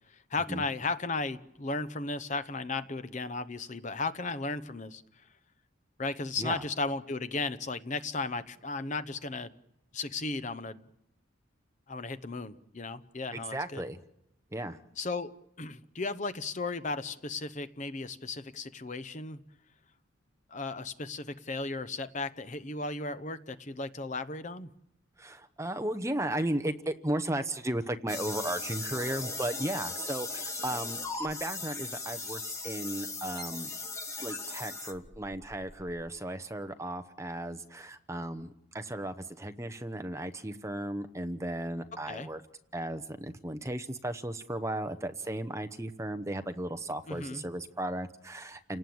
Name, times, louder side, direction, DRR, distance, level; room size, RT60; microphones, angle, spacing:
voice 1, 0.3-5.0 6.0-9.5 9.9-10.9 11.9-13.8 15.0-15.3 15.6-19.4 20.5-24.7 42.1-42.3 47.1-47.4, left 3 dB, 35° left, 12 dB, 0.9 m, -35 dB
voice 2, 13.3-14.0 14.5-14.8 25.2-33.7 34.2-42.4 42.7-48.8, right 1 dB, 15° right, 9 dB, 0.9 m, -35 dB
sound 1, 28.1-36.1, left 3 dB, 15° left, 1.4 m, -38 dB
30.0 x 18.5 x 7.9 m, 0.85 s
head